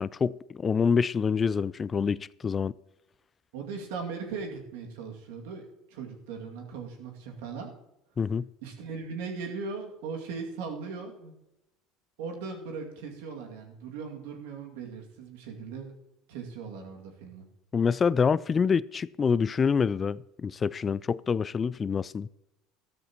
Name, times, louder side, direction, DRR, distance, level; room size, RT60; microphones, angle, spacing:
voice 1, 0.0-2.7 8.2-8.5 17.7-22.3, left 6 dB, 30° left, 0.3 m, -26 dB
voice 2, 3.5-5.6 5.9-7.7 8.6-11.3 12.2-15.9 16.3-17.5, right 5 dB, 80° right, 2.3 m, -38 dB
13.5 x 12.5 x 3.0 m
supercardioid pair, 90°, 0 cm